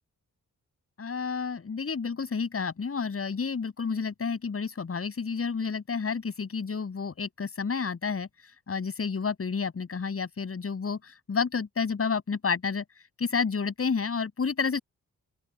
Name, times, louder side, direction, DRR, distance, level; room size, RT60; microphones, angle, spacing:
voice 1, 1.0-8.3 8.7-12.8 13.2-14.8, left 5 dB, 45° left, 7.6 m, -30 dB
open air
cardioid pair, 105°, 32 cm